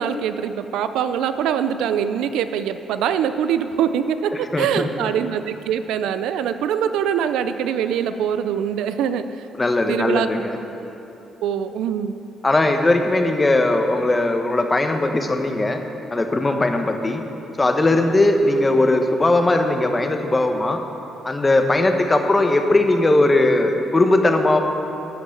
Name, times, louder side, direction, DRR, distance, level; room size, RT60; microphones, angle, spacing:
voice 1, 0.0-9.4 9.9-10.3 11.4-12.2, right 8 dB, 90° right, 10 dB, 0.5 m, -23 dB
voice 2, 4.3-4.9 9.5-10.6 12.4-15.8 16.1-17.2 17.6-20.8 21.2-24.6, left 2 dB, 20° left, 5 dB, 1.1 m, -19 dB
13.0 x 6.0 x 7.2 m, 2.9 s
cardioid pair, 90°, 0 cm